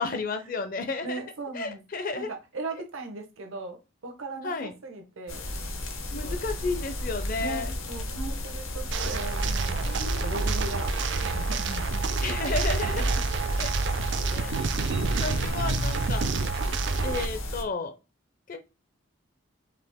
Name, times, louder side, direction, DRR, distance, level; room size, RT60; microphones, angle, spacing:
voice 1, 0.0-1.2 1.5-2.3 4.4-4.7 6.1-7.7 9.8-10.8 12.2-13.0 13.6-13.7 14.3-14.6 15.2-16.3 17.0-17.9 18.5-18.6, left 3 dB, 40° left, 8 dB, 0.5 m, -32 dB
voice 2, 1.0-1.8 2.1-5.4 6.2-6.4 7.4-12.0, right 3 dB, 80° right, 4 dB, 0.9 m, -38 dB
sound 1, 5.3-17.6, left 1 dB, 75° left, 1.0 m, -34 dB
sound 2, 8.9-17.3, right 4 dB, 55° right, 0.4 m, -28 dB
5.0 x 2.8 x 3.5 m, 0.28 s
head